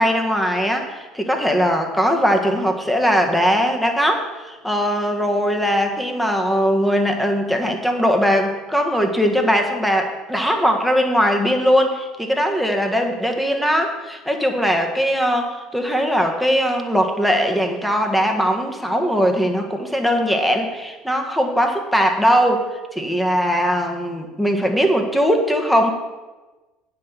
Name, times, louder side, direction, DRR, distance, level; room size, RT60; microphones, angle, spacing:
voice 1, 0.0-22.7 22.9-25.9, equal, ahead, 3 dB, 1.6 m, -20 dB
9.5 x 6.0 x 6.9 m, 1.2 s
hypercardioid pair, 65°, 0 cm